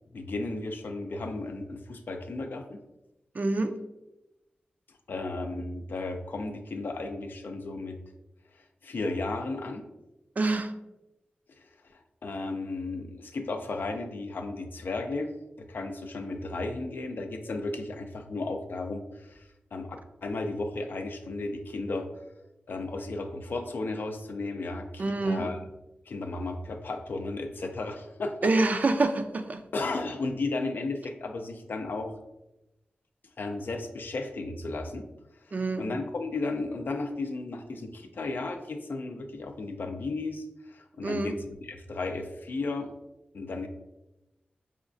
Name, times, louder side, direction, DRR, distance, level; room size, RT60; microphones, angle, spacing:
voice 1, 0.1-2.8 4.9-8.0 8.5-9.8 11.6-15.3 15.6-20.0 20.2-22.1 22.7-25.6 26.1-28.5 29.7-32.1 33.4-35.1 35.5-42.9 43.3-43.7, left 3 dB, 70° left, 5 dB, 0.4 m, -34 dB
voice 2, 3.3-3.8 10.4-10.7 25.0-25.5 28.4-29.6 35.5-35.8 41.0-41.4, right 2 dB, 50° right, 8 dB, 0.3 m, -26 dB
4.9 x 2.3 x 2.5 m, 0.94 s
wide cardioid pair, 80°, 4 cm